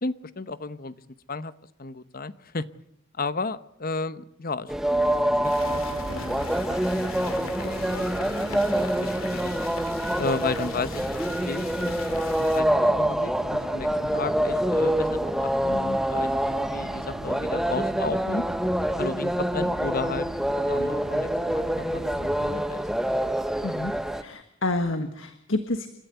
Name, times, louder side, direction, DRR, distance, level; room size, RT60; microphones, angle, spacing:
voice 1, 0.0-0.9 1.3-1.5 1.8-2.7 3.2-4.7 5.0-5.1 5.4-5.8 6.1-6.4 6.9-9.6 10.2-11.1 11.5-12.2 12.5-18.4 19.0-22.1 22.4-22.9, left 3 dB, 45° left, 14 dB, 0.9 m, -34 dB
sound 1, 4.7-24.2, right 1 dB, ahead, 0.8 m, -26 dB
sound 2, 5.4-12.6, left 4 dB, 90° left, 2.6 m, -41 dB
sound 3, 5.6-22.6, equal, 55° right, 4.3 m, -42 dB
voice 2, 24.2-25.9, left 2 dB, 70° left, 8 dB, 1.5 m, -28 dB
29.5 x 13.5 x 8.1 m, 0.76 s
head